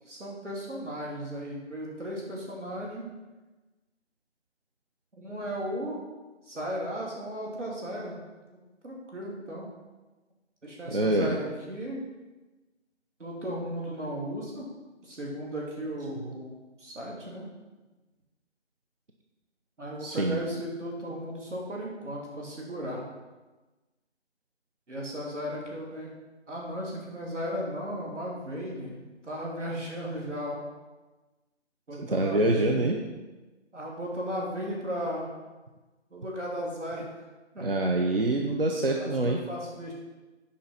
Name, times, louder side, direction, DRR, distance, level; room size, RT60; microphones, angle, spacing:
voice 1, 0.1-3.1 5.2-6.0 6.4-8.1 8.8-9.7 10.6-12.0 13.2-14.7 15.0-17.5 19.8-23.0 24.9-26.1 26.5-30.6 31.9-32.9 33.7-35.3 36.1-37.1 37.5-37.7 38.9-39.9, equal, 80° right, -3 dB, 3.3 m, -35 dB
voice 2, 10.9-11.4 20.0-20.4 32.0-33.0 37.6-39.4, right 2 dB, 50° right, 2 dB, 0.8 m, -25 dB
8.6 x 5.3 x 5.7 m, 1.2 s
figure-of-eight pair, 180°, 36 cm